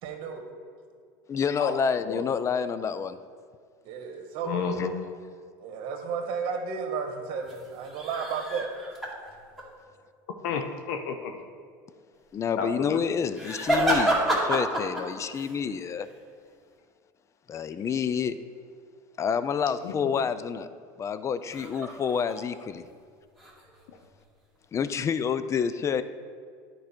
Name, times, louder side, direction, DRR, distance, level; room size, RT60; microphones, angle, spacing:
voice 1, 0.0-0.4 3.8-4.8 5.6-8.7, right 5 dB, 60° right, 3 dB, 1.5 m, -33 dB
voice 2, 1.3-3.2 4.8-4.9 12.3-16.1 17.5-18.4 19.2-20.7 21.0-22.8 24.7-26.0, left 7 dB, 30° left, 13 dB, 0.4 m, -28 dB
voice 3, 4.4-4.9 10.4-11.5 12.6-13.0 19.8-20.1, left 5 dB, 75° left, 5 dB, 0.7 m, -31 dB
sound 1, 7.4-9.7 13.3-15.6 16.0-16.2 21.5-22.8 23.1-24.2 24.8-25.2, right 1 dB, ahead, 2.2 m, -29 dB
10.0 x 4.8 x 4.5 m, 2.1 s
supercardioid pair, 105°, 11 cm